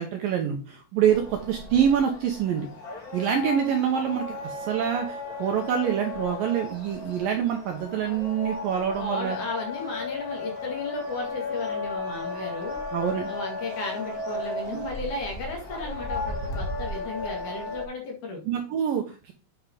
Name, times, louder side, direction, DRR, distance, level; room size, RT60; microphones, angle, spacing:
voice 1, 0.0-2.7 3.1-9.4 12.9-13.3 14.7-14.8 18.5-19.3, right 8 dB, 75° right, 3 dB, 2.2 m, -26 dB
sound 1, 1.1-17.8, left 3 dB, 30° left, 2.0 m, -35 dB
voice 2, 9.0-12.8 13.3-18.4, left 3 dB, 55° left, 1 dB, 2.9 m, -35 dB
9.5 x 4.6 x 5.2 m, 0.32 s
omnidirectional pair, 5.1 m